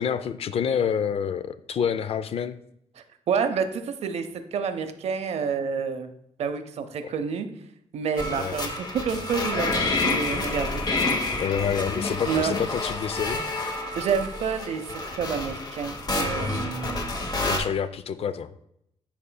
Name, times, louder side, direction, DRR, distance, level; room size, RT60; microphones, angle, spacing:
voice 1, 0.0-2.6 7.0-7.1 8.3-8.6 11.4-13.4 17.5-18.5, left 7 dB, 55° left, 13 dB, 0.4 m, -28 dB
voice 2, 3.3-6.1 6.4-7.5 7.9-10.8 12.3-12.5 14.0-14.8 15.1-17.1, right 6 dB, 65° right, 9 dB, 0.6 m, -28 dB
sound 1, 8.2-17.6, left 2 dB, 35° left, 0.9 m, -29 dB
10.5 x 4.2 x 2.2 m, 0.75 s
cardioid pair, 95°, 12 cm